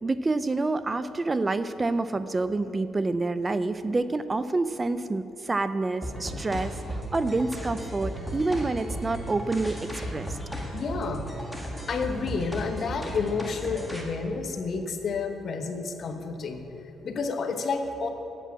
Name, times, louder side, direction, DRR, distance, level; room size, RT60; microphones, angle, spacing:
voice 1, 0.0-10.4, right 3 dB, 25° right, 13 dB, 0.4 m, -28 dB
sound 1, 6.0-14.0, equal, 5° right, 1.8 m, -35 dB
voice 2, 10.7-11.3 11.9-16.6 17.0-18.1, left 4 dB, 55° left, 5 dB, 1.0 m, -30 dB
8.3 x 7.3 x 8.4 m, 2.9 s
cardioid pair, 90°, 0 cm